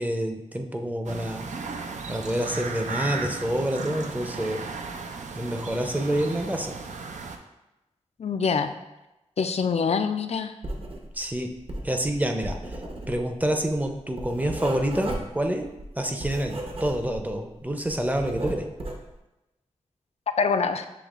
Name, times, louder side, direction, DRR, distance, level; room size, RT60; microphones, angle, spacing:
voice 1, 0.0-1.5 2.1-4.6 5.4-6.8 11.1-11.5 11.8-12.8 13.1-15.7 16.0-18.7, right 1 dB, 15° right, 4 dB, 0.6 m, -27 dB
sound 1, 1.0-7.4, right 4 dB, 80° right, 0.4 m, -35 dB
voice 2, 8.2-8.7 9.4-10.5 20.4-20.8, left 5 dB, 60° left, 8 dB, 0.4 m, -24 dB
Writing, 10.6-11.3 11.5-17.4 17.7-19.1, right 1 dB, 50° right, 0.8 m, -35 dB
7.0 x 3.0 x 2.4 m, 0.98 s
cardioid pair, 45°, 12 cm